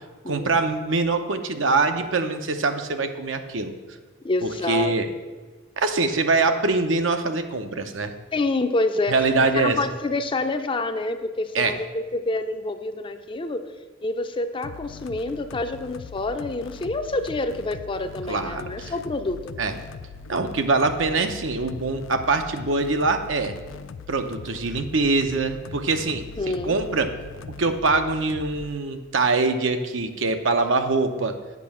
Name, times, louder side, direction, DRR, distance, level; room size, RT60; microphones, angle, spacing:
voice 1, 0.3-3.7 4.4-5.1 5.8-8.1 9.1-9.8 11.5-11.7 18.3-18.9 19.6-19.7 20.3-23.6 24.1-27.2 27.6-31.4, right 3 dB, 75° right, 7 dB, 0.8 m, -23 dB
voice 2, 4.2-4.9 8.3-9.2 9.6-13.7 14.0-19.6 26.4-26.7, left 2 dB, 25° left, 8 dB, 0.5 m, -27 dB
sound 1, 14.6-28.7, left 5 dB, 85° left, 0.4 m, -41 dB
8.5 x 5.5 x 7.2 m, 1.3 s
head